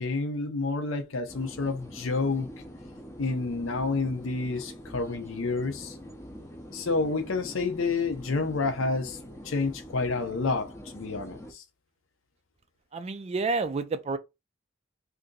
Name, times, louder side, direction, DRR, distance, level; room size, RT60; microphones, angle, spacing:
voice 1, 0.0-2.5 3.2-6.0 6.7-9.2 9.4-11.6, left 3 dB, 70° left, 0.7 m, -29 dB
sound 1, 1.3-11.5, equal, 15° left, 0.6 m, -44 dB
voice 2, 12.9-14.2, right 3 dB, 30° right, 0.3 m, -29 dB
2.7 x 2.5 x 3.7 m
head